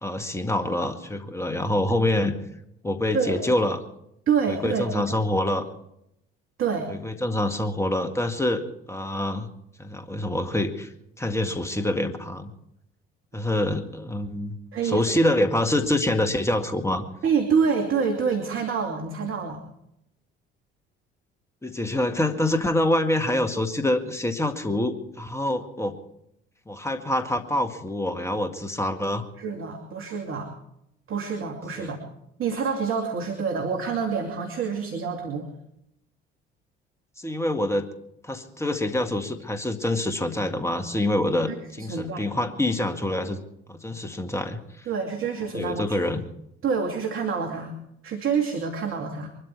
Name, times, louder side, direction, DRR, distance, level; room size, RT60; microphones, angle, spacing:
voice 1, 0.0-2.3 2.8-3.8 4.5-5.6 6.9-9.5 9.8-12.5 13.3-14.6 14.8-17.1 21.6-26.0 26.7-29.3 31.8-31.9 37.2-37.9 38.2-43.4 43.7-44.9 45.5-46.2, left 1 dB, 10° left, 8 dB, 1.9 m, -26 dB
voice 2, 4.3-5.1 6.6-6.9 14.7-15.1 17.2-19.6 29.4-30.5 31.1-32.0 32.4-35.5 41.5-42.3 44.9-46.0 46.6-47.7 48.0-49.3, right 6 dB, 45° right, 2 dB, 2.7 m, -27 dB
23.5 x 13.0 x 4.8 m, 0.79 s
hypercardioid pair, 55°, 29 cm